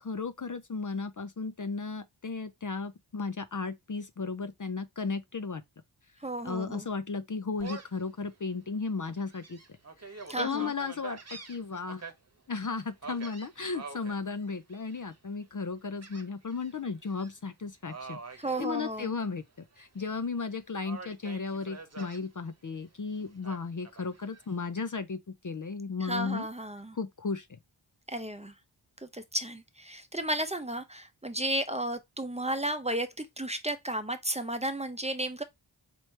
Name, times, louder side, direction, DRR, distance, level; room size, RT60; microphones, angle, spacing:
voice 1, 0.0-5.6 6.4-9.6 10.0-12.1 12.5-19.4 19.8-25.2 25.4-26.5 26.9-27.6, left 4 dB, 40° left, 0.6 m, -35 dB
voice 2, 6.2-6.9 10.3-10.7 18.4-19.1 26.0-27.0 28.1-28.5 29.0-35.4, right 1 dB, 15° right, 0.7 m, -33 dB
Gull seagull, 7.6-8.0 8.5-8.6 9.2-12.1 13.0-14.2 14.7-15.2 16.0-16.7 17.0-17.3 17.8-19.4 19.7-20.5 20.8-22.2 23.4-24.4, right 4 dB, 30° right, 1.1 m, -45 dB
4.4 x 3.0 x 3.2 m
wide cardioid pair, 40°, 48 cm